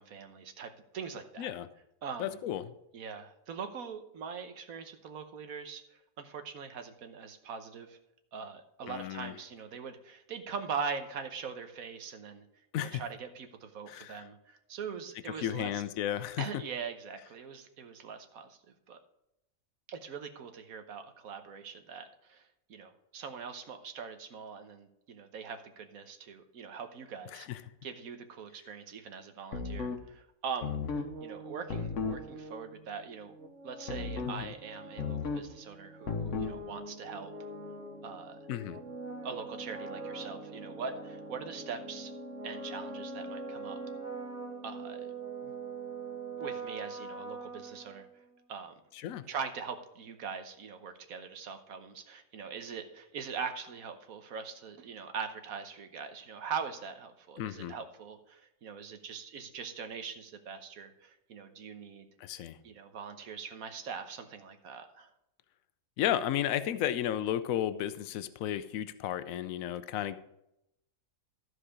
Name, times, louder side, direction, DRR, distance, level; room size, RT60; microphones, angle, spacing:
voice 1, 0.0-1.5 2.0-2.4 2.9-8.0 8.3-12.4 12.8-15.8 16.4-19.0 19.9-30.8 31.2-33.3 33.6-37.5 38.0-38.4 39.2-42.1 42.4-43.8 44.6-45.1 45.4-45.5 46.4-48.1 48.5-48.7 49.3-62.1 62.6-65.1, right 6 dB, 85° right, 7 dB, 1.4 m, -42 dB
voice 2, 2.2-2.7 8.9-9.3 12.7-13.0 13.9-14.2 15.4-16.4 27.3-27.6 34.4-34.5 38.5-38.8 49.0-49.2 57.4-57.7 62.2-62.6 66.0-70.2, left 11 dB, 80° left, 13 dB, 1.0 m, -33 dB
sound 1, 29.5-30.0 30.6-31.1 31.7-32.2 33.9-34.4 35.0-35.5 36.1-36.6, left 5 dB, 60° left, 1.3 m, -34 dB
sound 2, 30.7-48.4, right 3 dB, 60° right, 1.3 m, -43 dB
13.5 x 4.9 x 4.9 m, 0.83 s
omnidirectional pair, 1.5 m